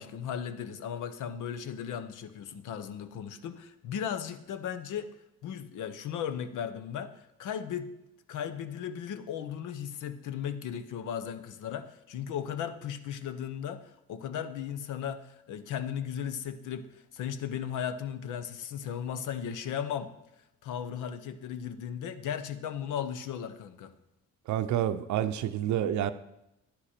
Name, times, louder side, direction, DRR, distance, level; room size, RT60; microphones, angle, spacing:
voice 1, 0.0-5.1 5.4-7.1 7.4-7.9 8.3-20.1 20.6-23.9, left 8 dB, 85° left, 11 dB, 0.9 m, -36 dB
voice 2, 24.5-26.1, right 11 dB, 70° right, 10 dB, 0.6 m, -28 dB
10.5 x 10.0 x 4.4 m, 0.89 s
cardioid pair, 90°, 30 cm